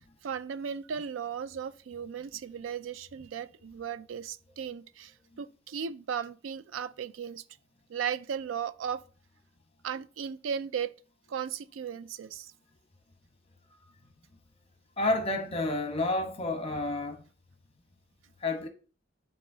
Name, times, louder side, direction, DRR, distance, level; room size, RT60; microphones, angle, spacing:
voice 1, 0.2-5.1 5.4-7.4 7.9-9.0 9.8-10.9 11.3-12.5, right 7 dB, 85° right, 0.4 m, -36 dB
voice 2, 15.0-17.2 18.4-18.7, left 2 dB, 30° left, 1.0 m, -30 dB
11.5 x 3.9 x 2.7 m
head